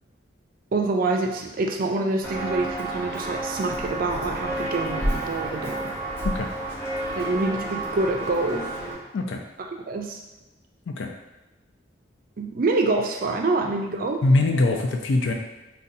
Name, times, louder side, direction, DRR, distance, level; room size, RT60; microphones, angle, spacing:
voice 1, 0.7-5.8 7.1-8.7 9.9-10.2 12.4-14.2, right 3 dB, 50° right, 3 dB, 0.4 m, -26 dB
Walk footsteps, 2.2-8.9, right 1 dB, 10° left, 0.8 m, -30 dB
voice 2, 14.2-15.3, left 2 dB, 75° left, 2 dB, 0.4 m, -22 dB
2.6 x 2.2 x 3.9 m, 1.0 s
head